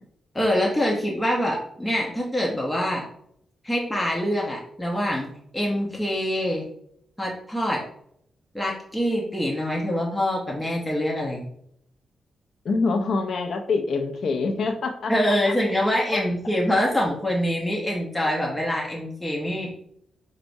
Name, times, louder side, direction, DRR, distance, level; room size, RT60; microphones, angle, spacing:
voice 1, 0.3-3.1 3.6-5.3 5.5-6.7 7.2-7.8 8.5-11.4 15.1-19.7, equal, 10° left, -2 dB, 0.7 m, -25 dB
voice 2, 12.6-15.4 16.1-16.2, left 4 dB, 65° left, 4 dB, 0.4 m, -25 dB
4.5 x 2.0 x 2.6 m, 0.70 s
cardioid pair, 75°, 0 cm